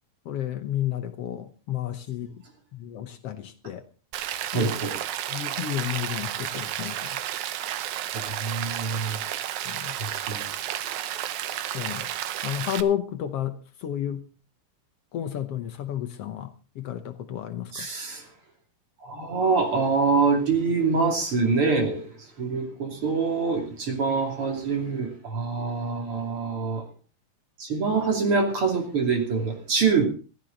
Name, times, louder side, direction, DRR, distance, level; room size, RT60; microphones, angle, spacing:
voice 1, 0.2-2.3 2.7-3.8 4.5-4.7 5.3-7.2 9.7-9.9 11.7-12.1 12.4-14.2 15.1-16.5 16.8-17.9, left 11 dB, 75° left, 8 dB, 1.4 m, -31 dB
Rain, 4.1-12.8, right 11 dB, 70° right, 2.0 m, -32 dB
voice 2, 4.5-4.9 8.1-9.2 10.3-10.5 17.7-18.2 19.0-22.1 22.4-26.8 27.6-30.1, right 4 dB, 40° right, 2 dB, 3.4 m, -25 dB
15.0 x 14.5 x 4.0 m, 0.36 s
omnidirectional pair, 4.0 m